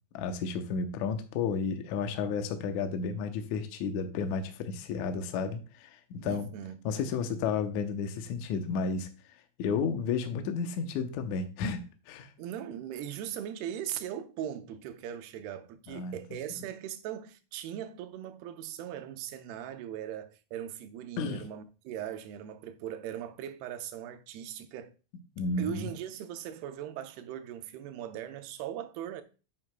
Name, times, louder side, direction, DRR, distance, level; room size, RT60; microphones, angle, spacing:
voice 1, 0.1-6.5 6.8-9.1 9.6-12.3 15.9-16.1 21.2-21.4 25.4-25.9, left 5 dB, 90° left, 1.7 m, -32 dB
voice 2, 6.2-6.9 12.4-24.9 25.6-29.2, right 10 dB, 85° right, 2.8 m, -39 dB
9.3 x 7.6 x 2.2 m
omnidirectional pair, 4.5 m